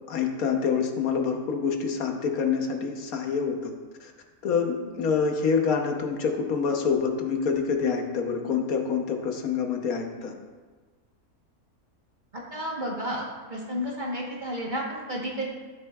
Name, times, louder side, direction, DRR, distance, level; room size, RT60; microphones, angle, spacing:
voice 1, 0.1-3.7 4.0-4.1 4.4-10.3, left 6 dB, 75° left, 3 dB, 1.3 m, -26 dB
voice 2, 12.3-15.5, equal, 35° right, -2 dB, 1.2 m, -32 dB
12.0 x 6.9 x 2.3 m, 1.4 s
omnidirectional pair, 1.5 m